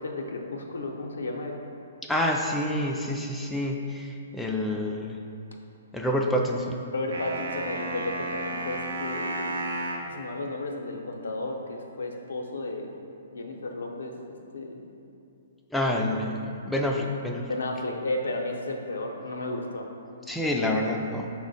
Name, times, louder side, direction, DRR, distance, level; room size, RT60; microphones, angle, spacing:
voice 1, 0.0-1.6 6.9-9.6 9.9-12.9 13.3-14.9 17.5-19.9, left 2 dB, 90° left, 1 dB, 0.5 m, -33 dB
voice 2, 2.0-5.2 5.9-6.8 15.7-17.5 20.3-21.3, left 1 dB, 5° left, 0 dB, 0.3 m, -28 dB
sound 1, 7.1-10.1, right 2 dB, 75° right, 0.5 m, -32 dB
5.9 x 2.1 x 4.0 m, 2.6 s
hypercardioid pair, 140°, 0 cm